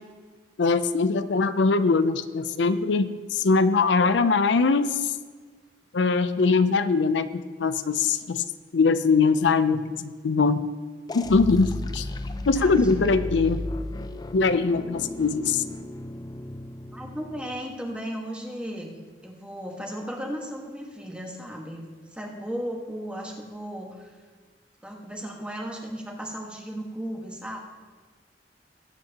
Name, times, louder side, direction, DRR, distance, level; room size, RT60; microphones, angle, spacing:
voice 1, 0.6-5.1 5.9-8.4 8.7-10.6 11.1-12.1 12.5-13.6 14.3-15.6, left 4 dB, 90° left, 11 dB, 0.5 m, -22 dB
sound 1, 11.1-17.7, left 2 dB, 25° left, 0.4 m, -34 dB
voice 2, 12.4-13.0 16.9-21.8 22.1-24.2 24.8-27.6, equal, 5° right, 0 dB, 1.5 m, -35 dB
20.0 x 9.2 x 2.9 m, 1.5 s
head